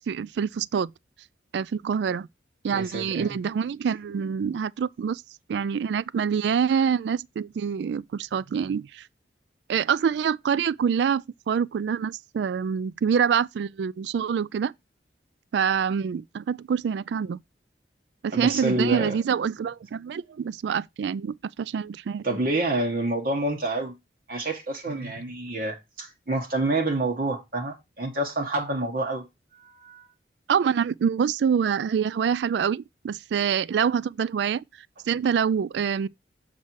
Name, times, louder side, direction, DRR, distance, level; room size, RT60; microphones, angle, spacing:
voice 1, 0.1-0.9 1.5-2.3 2.6-5.2 5.5-9.0 9.7-14.7 15.5-17.4 18.2-22.2 24.9-25.1 30.5-34.6 35.1-36.1, right 7 dB, 70° right, 0.3 m, -26 dB
voice 2, 2.7-3.3 18.3-19.2 22.2-23.9 24.3-29.2 29.8-30.0, right 2 dB, 50° right, 1.2 m, -27 dB
7.4 x 4.3 x 4.6 m
head